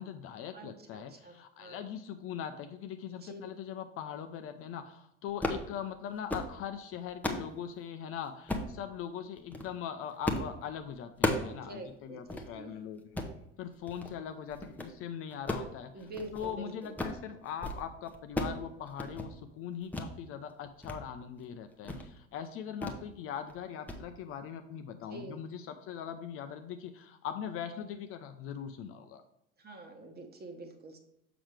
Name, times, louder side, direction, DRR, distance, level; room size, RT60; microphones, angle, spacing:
voice 1, 0.0-13.2 13.6-29.2, left 8 dB, 40° left, 7 dB, 0.6 m, -41 dB
voice 2, 0.5-1.8 3.2-3.4 11.5-12.7 15.9-16.9 25.1-25.4 29.6-31.0, right 2 dB, 25° right, 5 dB, 1.4 m, -46 dB
sound 1, 5.3-5.7 6.1-6.5 6.9-7.5 8.5-8.8 9.4-9.7 10.3-10.5 10.8-11.6 11.9-12.0 12.3-12.5 13.0-13.4 13.9-14.2 14.5-14.9 15.3-16.6 16.8-17.2 17.5-17.8 18.1-18.6 18.9-19.3 19.9-20.1 20.5-21.0 21.3-21.4 21.8-22.1 22.8-23.0 23.4-23.6 23.9-24.0, left 1 dB, 5° left, 0.9 m, -35 dB
7.2 x 5.9 x 3.3 m, 0.79 s
figure-of-eight pair, 70°, 36 cm